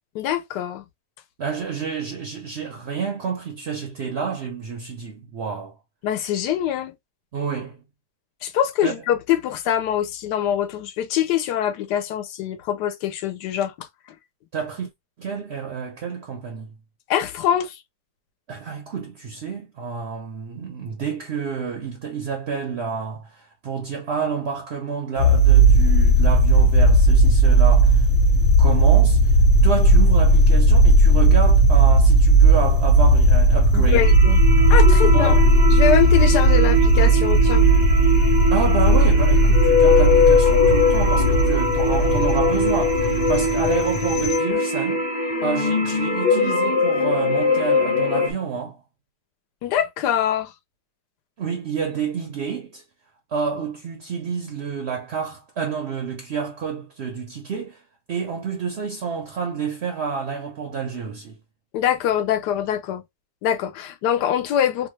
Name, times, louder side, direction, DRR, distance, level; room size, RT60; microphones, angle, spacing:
voice 1, 0.1-0.8 6.0-7.0 8.4-13.9 17.1-17.7 33.7-34.4 34.7-35.4 35.7-37.6 49.6-50.5 61.7-63.0 63.4-64.9, left 10 dB, 75° left, 1.2 m, -23 dB
voice 2, 1.4-5.8 7.3-7.8 8.8-9.0 14.5-14.9 15.2-16.7 18.5-28.1 28.6-34.1 34.5-34.7 35.0-35.5 38.5-45.0 45.4-48.8 51.4-52.8 53.3-57.8 58.1-61.4, right 6 dB, 60° right, 0.6 m, -29 dB
sound 1, 25.2-44.4, right 1 dB, 50° left, 1.2 m, -16 dB
sound 2, 34.0-48.3, left 3 dB, 35° left, 0.4 m, -21 dB
3.0 x 2.3 x 3.0 m
omnidirectional pair, 1.9 m